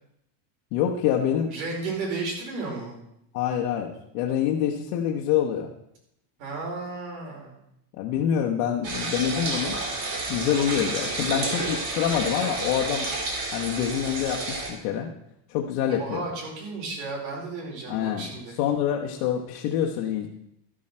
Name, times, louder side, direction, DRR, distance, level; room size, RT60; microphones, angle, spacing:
voice 1, 0.7-1.5 3.3-5.7 7.9-9.8 10.3-13.1 13.5-15.1 15.5-16.2 17.9-18.3 18.6-20.3, left 9 dB, 70° left, -2 dB, 1.3 m, -26 dB
voice 2, 1.5-2.9 6.4-7.6 10.5-10.9 15.8-18.5, right 3 dB, 90° right, -2 dB, 5.0 m, -33 dB
sound 1, 8.8-14.7, right 2 dB, 40° right, 3.1 m, -30 dB
13.0 x 7.6 x 4.4 m, 0.78 s
cardioid pair, 175°, 49 cm